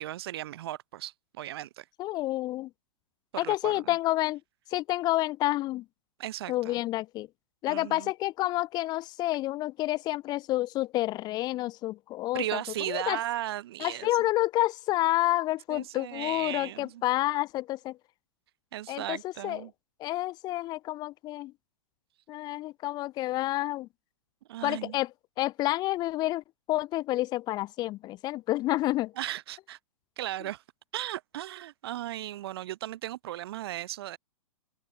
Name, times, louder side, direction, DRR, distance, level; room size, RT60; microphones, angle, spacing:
voice 1, 0.0-1.8 3.3-3.9 6.2-6.8 7.7-8.1 12.3-14.1 15.7-17.0 18.7-19.7 24.5-24.9 29.2-29.8 30.2-30.6 30.9-34.2, right 13 dB, 45° right, 0.6 m, -36 dB
voice 2, 2.0-2.7 3.4-4.4 4.7-5.8 6.5-7.3 7.6-12.6 12.9-13.2 13.8-18.0 18.9-19.6 20.0-21.5 22.3-23.9 24.6-25.1 25.4-29.1, left 16 dB, 25° left, 0.7 m, -29 dB
open air
figure-of-eight pair, 110°, 17 cm